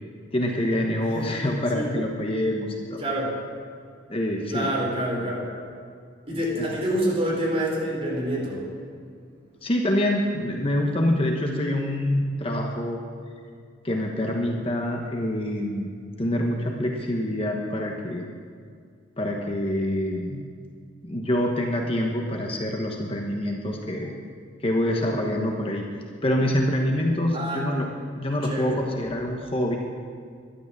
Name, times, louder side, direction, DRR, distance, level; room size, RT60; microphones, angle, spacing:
voice 1, 0.3-3.0 4.1-4.7 6.6-6.7 9.6-13.0 13.8-15.9 16.2-18.2 19.2-20.4 21.0-24.1 24.6-25.8 26.2-27.9 28.2-29.8, left 1 dB, 30° left, 1 dB, 1.2 m, -26 dB
voice 2, 3.0-3.3 4.5-5.5 6.3-8.7 27.3-27.7 28.4-28.7, right 1 dB, 30° right, -4 dB, 4.6 m, -27 dB
13.0 x 11.0 x 7.4 m, 2.2 s
head